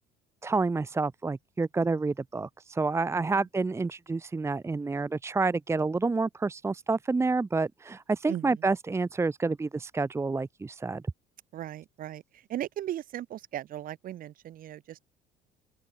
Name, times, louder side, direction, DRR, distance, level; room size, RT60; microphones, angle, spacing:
voice 1, 0.4-11.0, right 3 dB, 15° right, 1.0 m, -29 dB
voice 2, 11.5-12.2 12.5-15.0, right 12 dB, 60° right, 4.0 m, -37 dB
open air
cardioid pair, 105°, 17 cm